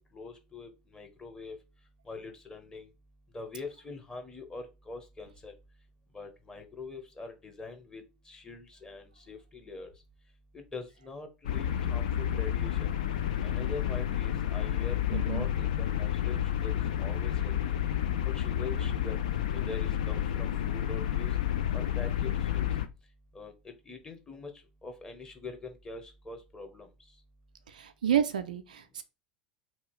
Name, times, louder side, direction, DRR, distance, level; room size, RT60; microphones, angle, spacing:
voice 1, 0.1-1.6 2.1-2.9 3.3-5.5 6.1-9.9 10.5-12.9 13.4-17.6 18.3-19.2 19.5-21.3 21.7-22.7 23.3-24.5 24.8-26.9, left 3 dB, 15° left, 0.8 m, -44 dB
sound 1, 11.4-22.9, left 10 dB, 65° left, 0.3 m, -30 dB
voice 2, 15.1-15.4 27.7-29.0, right 9 dB, 75° right, 0.3 m, -30 dB
2.8 x 2.3 x 3.0 m
figure-of-eight pair, 75°, 4 cm